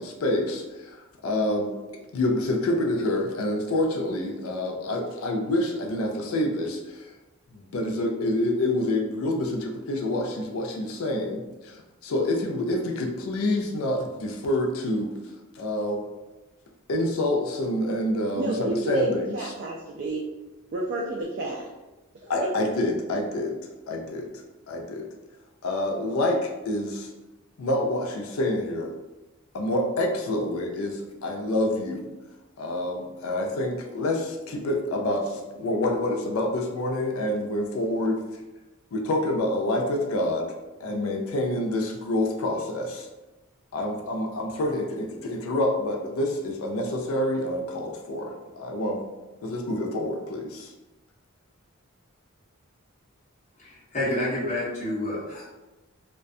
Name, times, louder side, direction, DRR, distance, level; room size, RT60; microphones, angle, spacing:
voice 1, 0.0-1.7 2.1-7.1 7.5-15.1 15.6-16.0 16.9-19.5 22.3-23.6 23.9-24.3 24.7-25.1 25.6-27.1 27.6-28.9 29.5-32.1 32.6-38.2 38.9-40.5 40.8-43.1 43.7-49.0 49.4-50.7, left 1 dB, 80° left, 2 dB, 0.4 m, -27 dB
voice 2, 18.3-20.2 20.7-21.7 22.2-22.5, right 1 dB, 50° right, -3 dB, 0.3 m, -31 dB
voice 3, 53.6-55.5, left 1 dB, 35° left, -8 dB, 0.9 m, -29 dB
2.4 x 2.2 x 2.6 m, 1.1 s
head